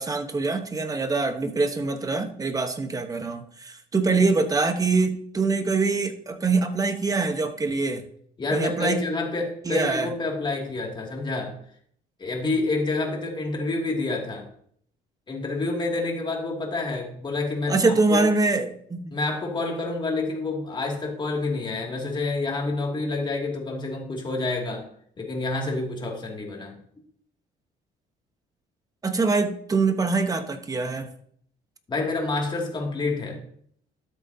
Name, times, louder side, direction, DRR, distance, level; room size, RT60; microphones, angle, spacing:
voice 1, 0.0-8.0 8.5-9.0 9.6-10.1 17.7-19.2 29.0-31.1, right 3 dB, 20° right, 8 dB, 1.1 m, -24 dB
voice 2, 8.4-11.5 12.2-14.5 15.3-18.2 19.1-24.9 25.2-26.8 31.9-33.4, left 3 dB, 25° left, 0 dB, 2.5 m, -28 dB
12.5 x 7.8 x 2.8 m, 0.63 s
cardioid pair, 110°, 17 cm